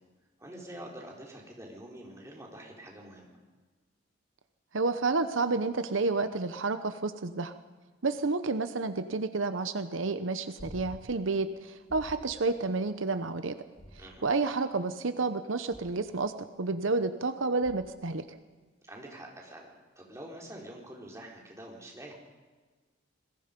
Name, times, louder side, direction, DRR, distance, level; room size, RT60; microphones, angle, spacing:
voice 1, 0.4-3.4 14.0-14.3 18.8-22.1, right 1 dB, 15° right, -2 dB, 4.2 m, -46 dB
voice 2, 4.7-7.5 8.0-13.6 14.2-16.3 16.6-18.2, right 3 dB, 80° right, 10 dB, 0.9 m, -30 dB
sound 1, 10.6-11.2 11.9-12.4 13.7-14.5 15.7-16.2 17.6-18.1 20.4-20.5, equal, 55° left, 3.0 m, -49 dB
27.5 x 20.5 x 5.3 m, 1.4 s
head